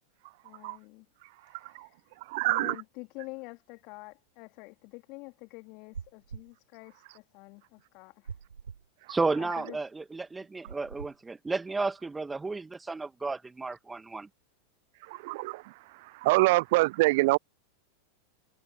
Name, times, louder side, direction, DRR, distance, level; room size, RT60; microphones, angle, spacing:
voice 1, 0.4-1.1 1.4-2.0 2.4-8.4 9.3-9.8, left 28 dB, 45° left, 2.6 m, -47 dB
voice 2, 2.3-2.7 15.1-15.6 16.2-17.4, right 22 dB, 55° right, 0.4 m, -24 dB
sound 1, 5.9-6.5 8.3-8.9 10.7-11.2, right 6 dB, 75° right, 4.5 m, -42 dB
voice 3, 9.1-14.3, right 3 dB, 10° right, 1.9 m, -32 dB
figure-of-eight pair, 90°, 0 cm